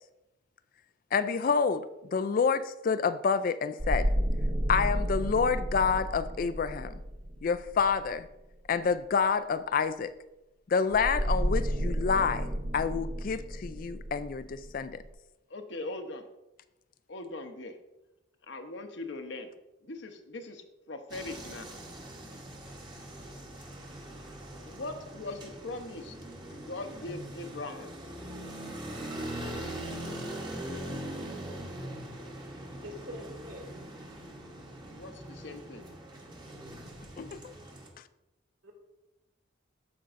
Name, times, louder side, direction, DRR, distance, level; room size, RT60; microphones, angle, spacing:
voice 1, 1.1-4.1 4.7-6.9 7.4-8.3 8.7-10.1 10.7-15.0 37.2-37.5, left 5 dB, 45° left, 12 dB, 0.3 m, -28 dB
sound 1, 3.8-8.2 10.9-15.1, equal, 40° right, 0.8 m, -32 dB
voice 2, 15.5-16.3 17.1-17.8 18.5-19.5 19.8-21.7 24.5-26.2 26.5-28.0 34.9-35.8, left 2 dB, 60° left, 6 dB, 0.8 m, -40 dB
sound 2, 21.1-37.9, right 1 dB, 20° right, 1.1 m, -42 dB
voice 3, 32.8-33.9 38.6-38.7, equal, 75° right, 1 dB, 2.2 m, -45 dB
14.5 x 5.2 x 2.5 m, 0.97 s
head